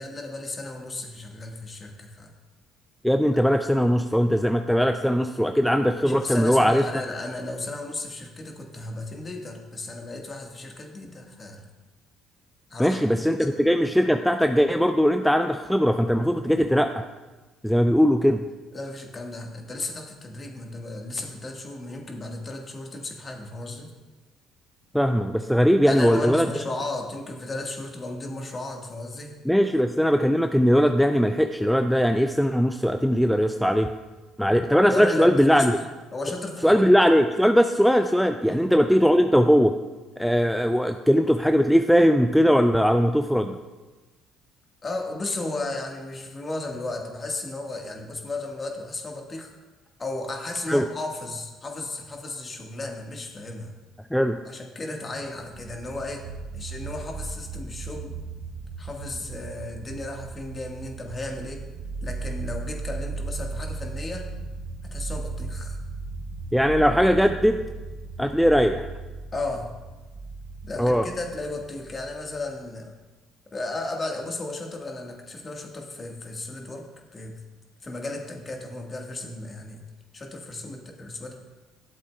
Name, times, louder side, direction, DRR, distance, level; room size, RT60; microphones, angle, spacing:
voice 1, 0.0-2.3 6.0-11.6 12.7-13.5 18.7-23.9 25.8-29.4 34.9-35.7 36.1-36.8 38.4-38.7 44.8-49.5 50.0-53.7 54.4-56.3 56.5-58.1 58.8-61.6 62.0-64.3 64.8-65.8 69.3-69.7 70.6-72.9 73.5-76.9 77.1-77.4 77.8-79.8 80.1-81.3, left 2 dB, 35° left, 2 dB, 1.5 m, -34 dB
voice 2, 3.0-6.8 12.8-17.0 17.6-18.4 24.9-26.5 29.5-33.9 34.4-35.7 36.6-39.7 40.2-43.6 50.7-50.9 54.1-54.4 66.5-67.6 68.2-68.9 70.8-71.0, equal, ahead, 7 dB, 0.4 m, -20 dB
sound 1, 55.2-72.6, right 3 dB, 60° right, 1.1 m, -36 dB
12.5 x 7.4 x 2.3 m, 1.2 s
hypercardioid pair, 60°, 0 cm